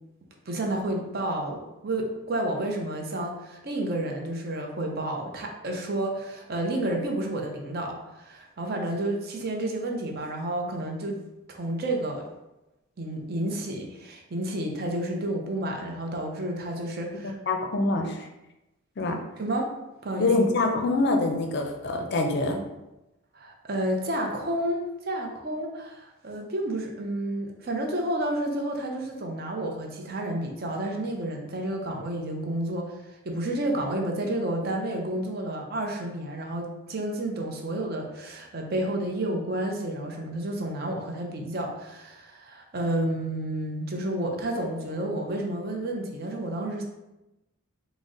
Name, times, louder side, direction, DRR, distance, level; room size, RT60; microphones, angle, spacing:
voice 1, 0.5-11.2 11.5-12.3 13.0-17.4 19.1-19.7 20.0-20.3 23.3-46.8, right 1 dB, 45° right, 1 dB, 0.5 m, -30 dB
voice 2, 17.2-18.1 19.0-19.2 20.2-22.6, left 2 dB, 50° left, 3 dB, 0.5 m, -25 dB
3.9 x 2.0 x 3.6 m, 0.97 s
head